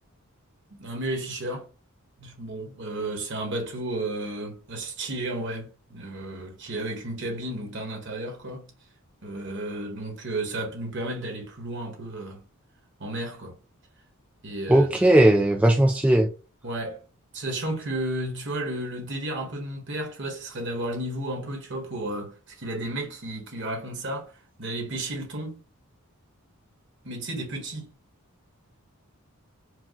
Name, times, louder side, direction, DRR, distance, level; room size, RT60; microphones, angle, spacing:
voice 1, 0.8-1.7 2.2-8.7 9.2-12.4 13.0-13.6 14.4-15.2 16.6-17.0 17.3-24.3 24.6-25.6 27.0-27.9, right 1 dB, 55° right, 1.4 m, -33 dB
voice 2, 14.7-16.3, right 1 dB, 5° right, 0.3 m, -18 dB
4.7 x 2.2 x 3.7 m
head